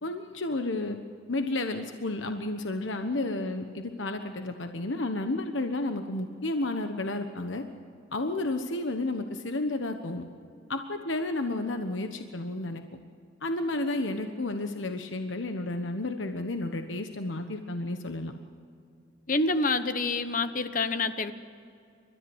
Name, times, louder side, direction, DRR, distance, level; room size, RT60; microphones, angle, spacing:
voice 1, 0.0-1.0 1.3-7.6 8.1-10.2 10.7-12.8 13.4-18.3, left 2 dB, 75° left, 6 dB, 1.2 m, -31 dB
voice 2, 19.3-21.3, left 3 dB, 45° left, 11 dB, 1.0 m, -27 dB
30.0 x 14.0 x 8.0 m, 2.4 s
head